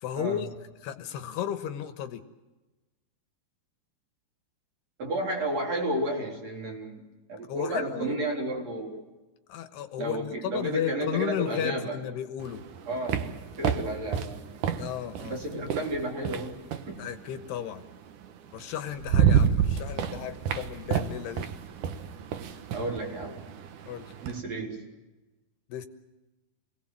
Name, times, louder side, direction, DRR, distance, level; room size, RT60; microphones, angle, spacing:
voice 1, 0.0-0.5 0.8-2.2 7.5-8.1 9.5-12.6 14.7-15.4 17.0-17.8 18.5-21.5 23.9-24.1 25.7-25.9, left 10 dB, 75° left, 9 dB, 3.2 m, -34 dB
voice 2, 5.0-7.0 7.3-9.0 10.0-12.0 12.9-13.3 13.6-14.4 15.2-16.6 16.9-17.1 22.7-23.5 24.2-24.8, right 1 dB, 40° right, 0 dB, 4.8 m, -32 dB
sound 1, 12.4-17.0 18.2-18.3 18.7-24.4, right 8 dB, 65° right, 2.2 m, -29 dB
28.0 x 20.5 x 7.5 m, 1.1 s
omnidirectional pair, 4.9 m